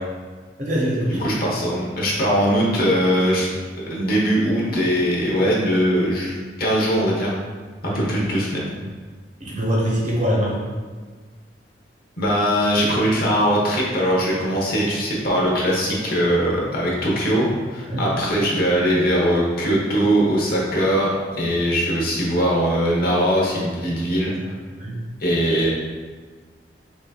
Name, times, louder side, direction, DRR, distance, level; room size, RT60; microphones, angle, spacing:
voice 1, 0.6-1.3 7.8-8.0 9.4-10.6 17.9-18.0 24.8-24.9, equal, 45° right, -4 dB, 1.1 m, -23 dB
voice 2, 1.1-3.5 3.8-7.3 7.8-8.8 12.2-24.5 25.2-25.7, equal, 60° left, -4 dB, 1.0 m, -21 dB
5.8 x 2.7 x 2.3 m, 1.4 s
head